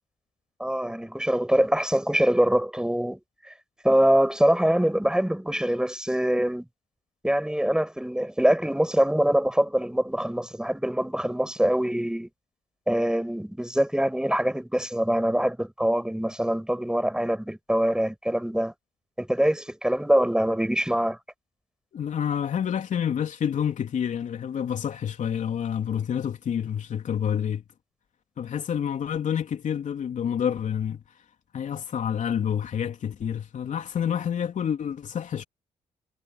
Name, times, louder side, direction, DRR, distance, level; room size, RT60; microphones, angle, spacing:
voice 1, 0.6-3.2 3.8-6.6 7.2-12.3 12.9-18.7 19.2-21.2, equal, 5° right, 7.1 m, -24 dB
voice 2, 21.9-27.6 28.4-31.0 31.5-35.4, left 8 dB, 60° left, 3.5 m, -28 dB
supercardioid pair, 50°, 14 cm